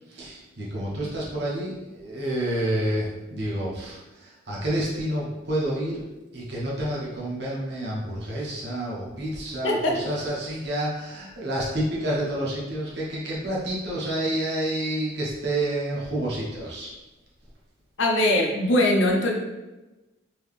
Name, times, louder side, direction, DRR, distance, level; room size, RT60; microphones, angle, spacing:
voice 1, 0.1-6.1 6.3-16.9, right 1 dB, 55° right, -6 dB, 1.3 m, -29 dB
voice 2, 9.6-10.0 18.0-19.3, left 1 dB, 75° left, 0 dB, 0.8 m, -21 dB
4.6 x 3.0 x 3.5 m, 1.1 s
head